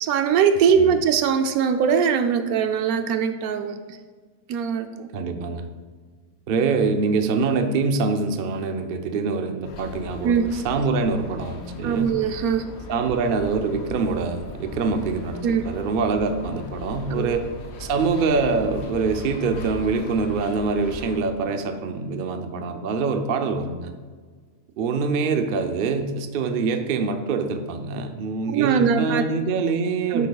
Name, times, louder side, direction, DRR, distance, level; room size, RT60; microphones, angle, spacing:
voice 1, 0.0-3.7 4.5-5.1 10.2-10.5 11.8-12.6 15.4-15.6 17.1-17.3 28.5-29.2 30.1-30.3, right 7 dB, 80° right, 8 dB, 1.1 m, -21 dB
voice 2, 5.1-5.7 6.5-12.2 12.9-17.5 17.8-23.9 24.8-30.3, right 4 dB, 55° right, 7 dB, 0.6 m, -24 dB
sound 1, 9.6-21.2, left 3 dB, 75° left, 1.3 m, -39 dB
10.5 x 8.3 x 2.3 m, 1.5 s
omnidirectional pair, 1.6 m